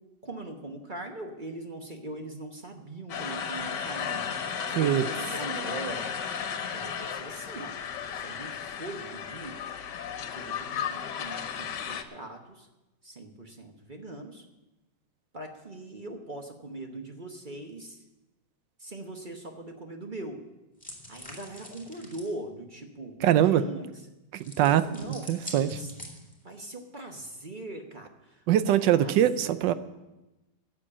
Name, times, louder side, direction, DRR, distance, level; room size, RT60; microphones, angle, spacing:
voice 1, 0.2-4.3 4.7-6.1 6.7-7.8 8.1-9.6 10.3-12.7 13.0-14.5 15.3-18.0 18.8-20.4 21.1-23.9 24.6-25.3 25.7-25.9 26.4-28.4 28.9-29.6, right 2 dB, 35° right, 3 dB, 1.0 m, -41 dB
sound 1, 3.1-12.0, left 7 dB, 75° left, 1.5 m, -34 dB
sound 2, 20.8-22.3 24.4-26.5, left 1 dB, 5° left, 2.3 m, -44 dB
voice 2, 23.2-23.6 24.3-24.8 25.3-25.8 28.5-29.7, right 11 dB, 90° right, 13 dB, 1.3 m, -22 dB
12.0 x 7.4 x 8.6 m, 1.0 s
omnidirectional pair, 1.9 m